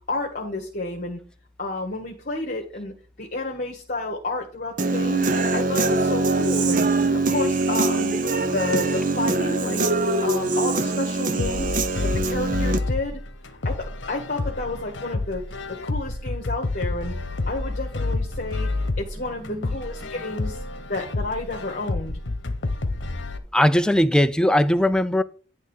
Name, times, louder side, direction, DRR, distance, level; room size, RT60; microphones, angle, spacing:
voice 1, 0.1-1.2 1.6-5.3 5.5-6.9 7.3-8.2 8.5-9.8 10.2-11.8 12.2-13.2 13.6-15.4 15.8-17.1 17.5-18.7 19.0-22.2, left 2 dB, 45° left, 1.5 m, -31 dB
Human voice / Guitar, 4.8-12.8, right 2 dB, 45° right, 0.7 m, -23 dB
sound 1, 11.4-23.4, left 2 dB, 75° left, 1.0 m, -29 dB
voice 2, 19.4-19.7 23.5-25.2, left 1 dB, 5° left, 0.4 m, -19 dB
10.5 x 3.6 x 7.1 m
head